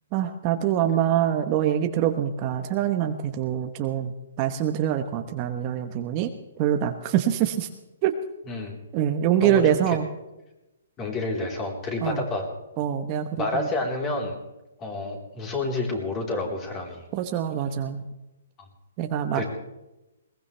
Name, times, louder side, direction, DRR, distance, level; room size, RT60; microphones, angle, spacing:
voice 1, 0.1-6.3 6.6-7.7 8.0-8.2 8.9-10.1 12.0-12.3 12.8-13.7 17.1-18.0 19.0-19.4, right 10 dB, 30° right, 6 dB, 1.1 m, -25 dB
voice 2, 9.4-10.0 11.0-12.5 13.4-14.4 14.8-17.0 19.3-19.5, left 2 dB, 20° left, 1 dB, 4.0 m, -29 dB
21.5 x 20.0 x 3.4 m, 0.98 s
hypercardioid pair, 155°, 0 cm